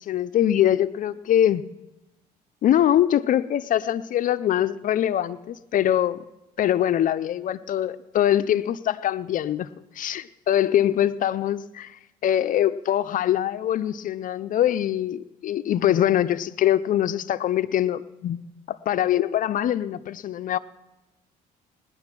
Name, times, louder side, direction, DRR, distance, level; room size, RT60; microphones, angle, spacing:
voice 1, 0.0-1.6 2.6-6.2 6.6-9.7 10.0-18.4 18.7-20.6, left 11 dB, 50° left, 14 dB, 0.5 m, -23 dB
19.5 x 10.5 x 6.0 m, 0.99 s
cardioid pair, 110°, 17 cm